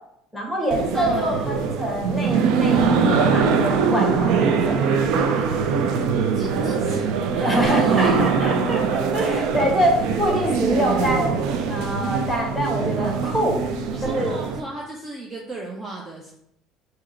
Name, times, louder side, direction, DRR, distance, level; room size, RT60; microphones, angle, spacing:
voice 1, 0.3-4.8 7.4-11.4 11.7-13.6 14.0-14.4, right 1 dB, 5° right, -2 dB, 1.6 m, -25 dB
sound 1, 0.7-14.6, right 5 dB, 70° right, 0.4 m, -22 dB
voice 2, 0.9-1.5 6.3-8.2 13.9-16.3, right 2 dB, 30° right, -1 dB, 0.7 m, -34 dB
3.6 x 2.9 x 4.3 m, 0.76 s
supercardioid pair, 90°, 0 cm